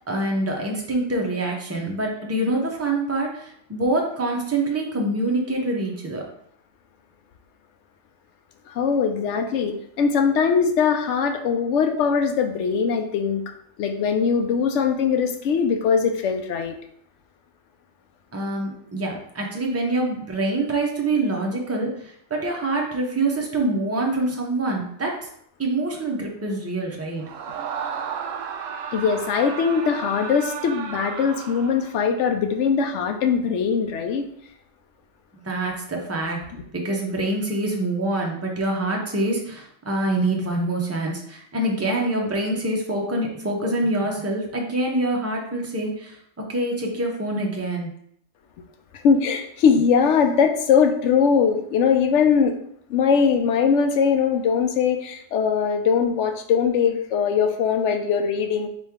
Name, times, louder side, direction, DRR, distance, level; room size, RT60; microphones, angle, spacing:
voice 1, 0.0-6.2 18.3-25.1 25.6-27.2 35.4-36.4 36.7-47.9, right 2 dB, 15° right, 0 dB, 0.5 m, -25 dB
voice 2, 8.7-13.4 13.8-16.8 28.9-34.2 49.0-52.5 52.9-58.7, left 6 dB, 75° left, 6 dB, 0.9 m, -21 dB
Screaming, 27.2-32.0, right 6 dB, 90° right, 1.0 m, -33 dB
4.3 x 3.0 x 3.5 m, 0.68 s
omnidirectional pair, 1.3 m